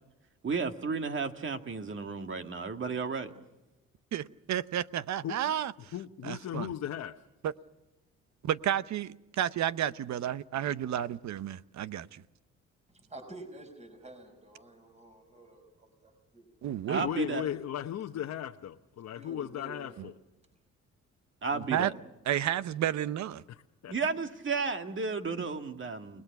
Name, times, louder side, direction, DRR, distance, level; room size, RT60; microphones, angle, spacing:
voice 1, 0.4-3.3 16.9-17.4 21.4-21.9 23.9-26.2, right 4 dB, 40° right, 6 dB, 1.9 m, -33 dB
voice 2, 4.1-5.9 6.2-6.7 7.4-7.5 8.4-9.1 9.4-12.2 16.6-17.1 20.0-20.1 21.5-21.9 22.3-23.4, right 11 dB, 65° right, 15 dB, 0.8 m, -31 dB
voice 3, 5.9-7.2 17.0-20.1 23.5-23.9, left 10 dB, 60° left, 4 dB, 1.0 m, -37 dB
voice 4, 12.9-16.5 17.2-17.7 19.1-20.0, right 1 dB, 20° right, 6 dB, 5.2 m, -49 dB
29.5 x 19.5 x 6.0 m, 0.95 s
cardioid pair, 90°, 30 cm